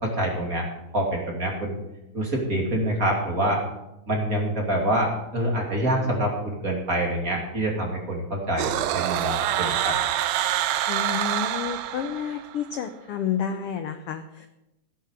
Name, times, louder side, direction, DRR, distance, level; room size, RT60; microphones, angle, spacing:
voice 1, 0.0-0.6 0.9-1.8 2.1-3.6 4.1-9.9, right 1 dB, 30° right, -1 dB, 2.9 m, -26 dB
sound 1, 8.6-12.6, right 12 dB, 75° right, 1.8 m, -26 dB
voice 2, 10.9-14.5, left 8 dB, 70° left, 8 dB, 1.4 m, -30 dB
16.5 x 10.5 x 4.9 m, 0.91 s
omnidirectional pair, 3.4 m